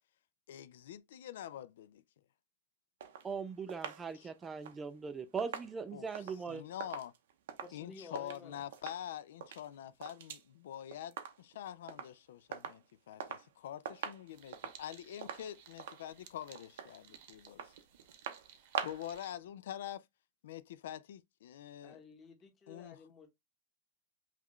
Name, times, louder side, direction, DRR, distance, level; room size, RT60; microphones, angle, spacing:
voice 1, 0.5-2.0 4.1-4.3 5.9-6.1 6.5-7.1 7.7-17.7 18.8-20.0 20.4-22.0 22.7-23.0, left 11 dB, 85° left, 0.4 m, -45 dB
sound 1, 3.0-8.4 8.7-9.1 9.3-10.5 10.7-11.6 11.9-12.2 12.5-13.5 13.8-19.2 19.5-19.6, right 8 dB, 90° right, 0.8 m, -45 dB
voice 2, 3.2-6.6, right 5 dB, 15° right, 0.3 m, -40 dB
voice 3, 7.6-8.6 21.8-23.3, left 4 dB, 15° left, 0.9 m, -53 dB
sound 2, 14.3-19.3, right 8 dB, 55° right, 0.9 m, -59 dB
5.6 x 2.3 x 3.1 m
supercardioid pair, 170°, 0 cm